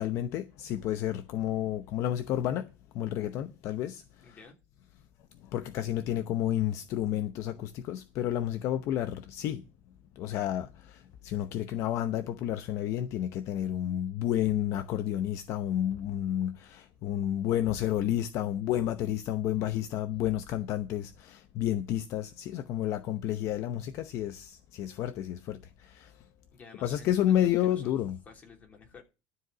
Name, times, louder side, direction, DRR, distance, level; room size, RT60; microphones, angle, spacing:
voice 1, 0.0-2.7 2.9-4.4 5.5-9.6 10.2-26.2 26.8-28.2, left 11 dB, 55° left, 0.8 m, -31 dB
voice 2, 4.2-4.6 26.5-27.9 28.2-29.0, left 5 dB, 25° left, 3.1 m, -52 dB
12.5 x 4.8 x 7.9 m
cardioid pair, 150°, 6 cm